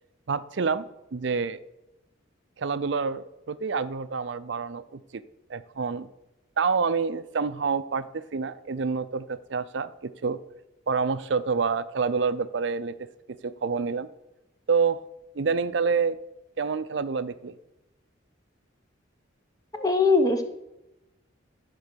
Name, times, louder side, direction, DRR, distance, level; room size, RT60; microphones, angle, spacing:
voice 1, 0.3-1.6 2.6-5.2 5.5-6.1 6.6-10.4 10.9-12.9 13.4-14.1 14.7-15.0 15.3-16.2 16.6-17.5, right 5 dB, 65° right, 13 dB, 0.5 m, -27 dB
voice 2, 19.8-20.4, left 3 dB, 20° left, 6 dB, 0.9 m, -21 dB
12.5 x 4.5 x 6.8 m, 0.92 s
head